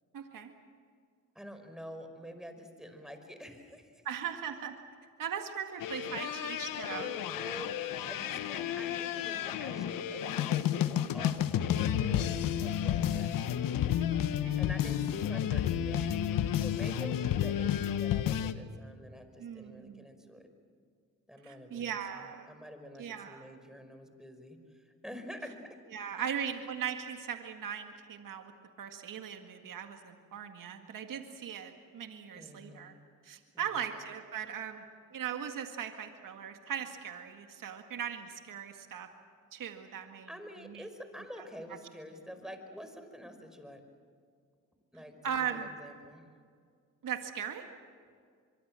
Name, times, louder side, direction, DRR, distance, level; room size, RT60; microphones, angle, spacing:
voice 1, 0.1-0.5 4.0-4.8 5.2-7.1 14.1-14.6 19.4-20.1 21.4-22.5 23.0-23.5 25.9-28.5 28.8-32.9 33.2-34.8 35.1-39.1 39.5-40.3 40.6-40.8 45.2-45.7 47.0-47.6, right 8 dB, 75° right, 5 dB, 1.9 m, -39 dB
voice 2, 1.4-4.0 6.2-6.5 6.9-13.6 14.6-16.1 16.6-20.5 21.3-25.8 26.2-26.3 32.3-32.9 33.5-33.7 40.3-43.8 44.9-46.3, equal, ahead, 7 dB, 5.2 m, -48 dB
sound 1, 5.8-18.5, left 10 dB, 90° left, 1.0 m, -31 dB
24.5 x 23.5 x 7.6 m, 2.1 s
supercardioid pair, 55°, 33 cm